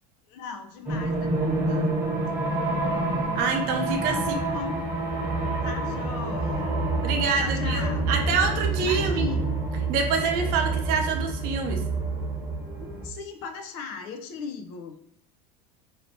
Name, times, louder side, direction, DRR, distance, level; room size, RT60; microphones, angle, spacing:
voice 1, 0.3-1.9 3.7-4.8 5.6-6.8 7.4-8.1 8.8-9.5 12.8-15.0, left 6 dB, 60° left, 5 dB, 0.5 m, -37 dB
sound 1, 0.9-13.1, right 2 dB, 10° right, 0.9 m, -27 dB
voice 2, 3.3-4.2 7.0-9.2 9.9-11.8, right 5 dB, 50° right, 3 dB, 0.6 m, -26 dB
3.1 x 2.8 x 2.6 m, 0.72 s
cardioid pair, 165°, 20 cm